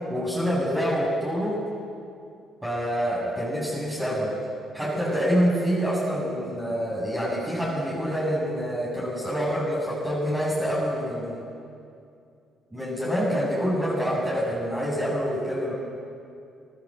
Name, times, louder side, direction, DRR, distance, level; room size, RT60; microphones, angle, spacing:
voice 1, 0.0-1.6 2.6-4.3 4.7-11.4 12.7-15.7, equal, 10° right, -5 dB, 7.9 m, -26 dB
27.5 x 18.0 x 7.9 m, 2.5 s
supercardioid pair, 75°, 0 cm